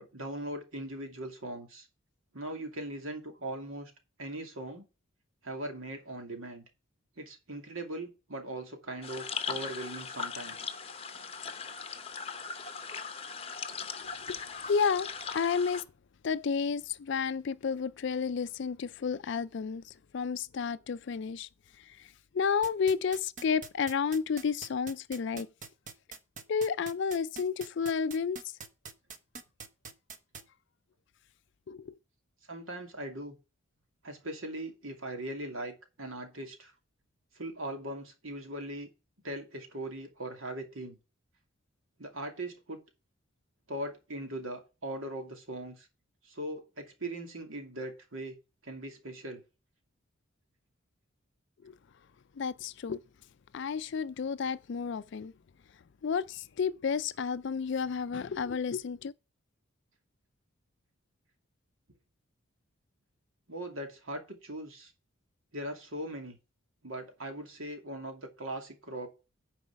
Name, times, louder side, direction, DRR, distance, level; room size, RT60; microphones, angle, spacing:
voice 1, 0.0-1.9 2.3-3.9 4.2-4.8 5.4-6.6 7.2-10.7 32.5-33.4 34.0-36.7 37.4-38.9 39.2-41.0 42.0-42.8 43.7-45.9 46.2-48.4 48.6-49.4 63.5-64.9 65.5-66.4 66.8-69.1, right 1 dB, 75° right, 2.5 m, -40 dB
sound 1, 9.0-15.8, left 6 dB, 25° left, 0.8 m, -39 dB
voice 2, 14.0-14.4 14.6-15.8 16.2-21.5 22.0-22.1 22.3-25.5 26.5-28.4 31.7-31.9 51.6-51.7 52.4-53.0 53.5-55.3 56.0-59.1, left 6 dB, 55° left, 0.4 m, -31 dB
sound 2, 22.6-30.4, right 5 dB, 35° right, 0.9 m, -44 dB
9.5 x 4.9 x 5.8 m
head